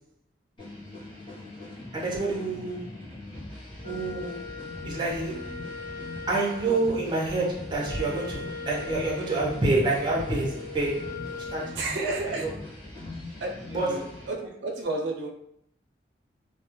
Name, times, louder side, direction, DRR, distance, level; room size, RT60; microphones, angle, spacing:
sound 1, 0.6-14.3, left 1 dB, 25° left, 0.8 m, -42 dB
voice 1, 1.9-2.9 3.8-4.5 4.8-5.6 6.3-11.8 12.4-12.5 13.7-14.1, right 2 dB, 25° right, 0.5 m, -28 dB
Wind instrument woodwind instrument, 3.8-11.8, left 4 dB, 60° left, 1.0 m, -40 dB
voice 2, 11.8-12.5 13.4-15.3, right 2 dB, 80° right, 0.4 m, -32 dB
2.2 x 2.0 x 2.9 m
head